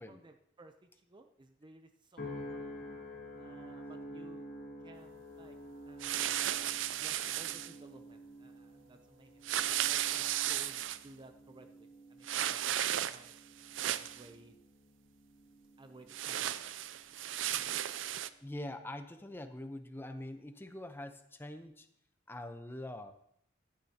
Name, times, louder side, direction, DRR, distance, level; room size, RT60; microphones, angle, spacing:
voice 1, 0.0-2.7 3.4-4.5 4.8-5.6 5.8-6.5 7.0-13.3 14.0-14.5 15.8-16.7, right 2 dB, 25° right, 7 dB, 0.6 m, -57 dB
sound 1, 2.2-16.6 17.2-17.6, equal, 55° left, 2.5 m, -50 dB
sound 2, 6.0-7.7 9.4-11.0 12.2-13.3 13.6-14.3 16.1-18.3, right 12 dB, 90° right, 0.5 m, -34 dB
voice 2, 18.4-21.9 22.3-23.1, left 1 dB, 10° left, 8 dB, 0.8 m, -44 dB
15.5 x 11.5 x 2.9 m, 0.71 s
head